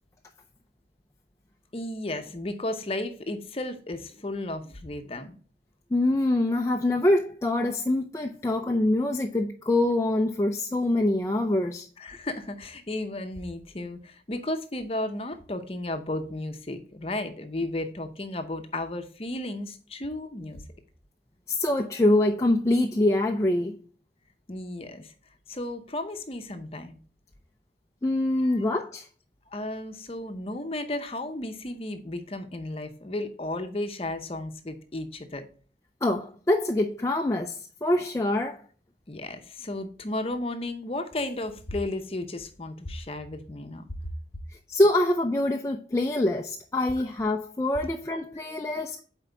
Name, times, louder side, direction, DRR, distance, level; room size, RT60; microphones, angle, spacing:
voice 1, 1.7-5.4 12.0-20.6 24.5-25.1 25.5-27.0 28.4-28.6 29.5-35.5 39.1-43.9, left 1 dB, 30° left, 0.7 m, -34 dB
voice 2, 5.9-11.9 21.5-23.8 28.0-29.1 36.0-38.6 44.7-49.0, left 1 dB, 15° left, 0.4 m, -25 dB
7.6 x 4.5 x 3.4 m
head